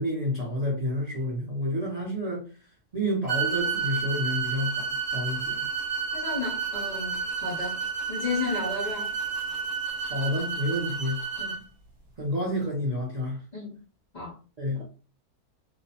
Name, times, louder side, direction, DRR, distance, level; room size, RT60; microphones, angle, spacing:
voice 1, 0.0-2.4 2.9-5.6 10.1-11.2 12.2-13.4 14.6-14.9, equal, 65° right, 0.4 m, -29 dB
sound 1, 3.3-11.6, right 6 dB, 40° right, 1.0 m, -31 dB
voice 2, 6.1-7.8 8.1-9.1 11.4-11.6 13.5-13.8 14.1-14.3, left 3 dB, 75° left, 0.4 m, -33 dB
2.5 x 2.0 x 2.7 m
omnidirectional pair, 1.6 m